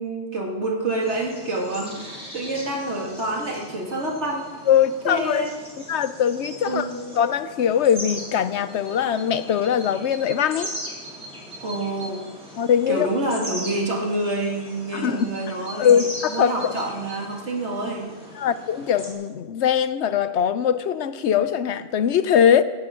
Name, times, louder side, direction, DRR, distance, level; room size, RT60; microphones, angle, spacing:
voice 1, 0.0-4.5 5.0-5.6 6.6-6.9 11.6-12.2 12.9-15.9 16.3-18.1, right 2 dB, 85° right, -1 dB, 2.7 m, -27 dB
sound 1, 1.0-19.1, equal, 5° right, 3.6 m, -39 dB
voice 2, 4.7-5.5 5.9-6.9 7.2-10.7 12.6-13.1 14.9-16.7 18.3-22.6, left 8 dB, 85° left, 13 dB, 1.0 m, -21 dB
18.0 x 14.5 x 3.8 m, 1.4 s
omnidirectional pair, 1.1 m